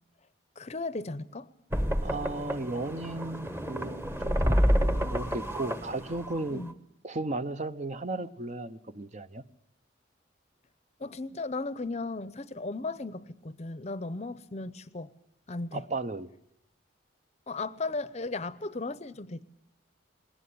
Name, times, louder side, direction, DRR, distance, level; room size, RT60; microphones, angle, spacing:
voice 1, 0.6-1.5 6.5-6.7 11.0-15.1 15.5-15.8 17.5-19.4, left 3 dB, 35° left, 0.7 m, -36 dB
sound 1, 1.7-6.7, equal, 10° right, 1.2 m, -29 dB
voice 2, 2.0-6.6 7.0-9.4 15.7-16.3, right 2 dB, 35° right, 0.8 m, -35 dB
20.0 x 19.0 x 8.5 m
head